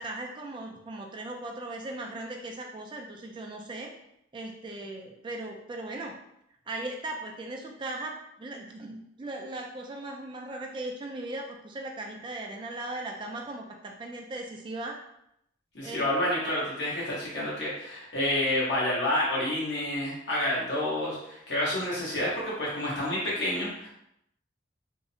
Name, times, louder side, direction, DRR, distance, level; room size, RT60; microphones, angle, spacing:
voice 1, 0.0-3.9 4.3-6.2 6.7-15.0 15.8-16.1 17.3-17.5, right 2 dB, 25° right, 2 dB, 0.3 m, -38 dB
voice 2, 15.7-23.9, left 1 dB, 70° left, -6 dB, 1.0 m, -29 dB
2.6 x 2.0 x 2.6 m, 0.77 s
head